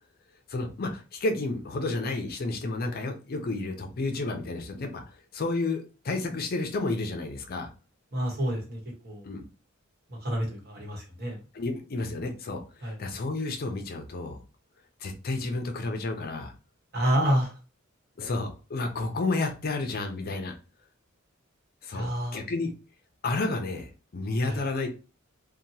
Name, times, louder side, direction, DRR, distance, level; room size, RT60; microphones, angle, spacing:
voice 1, 0.5-7.7 9.2-9.4 11.5-14.4 15.0-16.5 18.2-20.5 21.8-22.7 23.2-24.9, left 2 dB, 45° left, 5 dB, 0.5 m, -31 dB
voice 2, 8.1-8.8 9.0-9.2 10.1-11.4 12.8-13.0 16.9-17.5 21.9-22.4 24.4-24.6, equal, 50° right, -1 dB, 1.1 m, -28 dB
2.8 x 2.2 x 2.7 m, 0.33 s
head